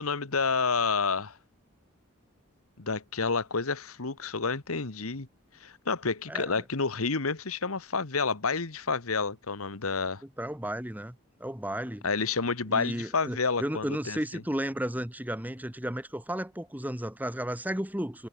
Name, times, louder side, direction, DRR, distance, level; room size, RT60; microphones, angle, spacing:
voice 1, 0.0-1.4 2.8-5.3 5.6-10.2 12.0-14.2, left 4 dB, 85° left, 1.5 m, -29 dB
voice 2, 6.3-6.6 10.4-12.0 12.7-18.3, right 1 dB, 10° right, 1.4 m, -34 dB
head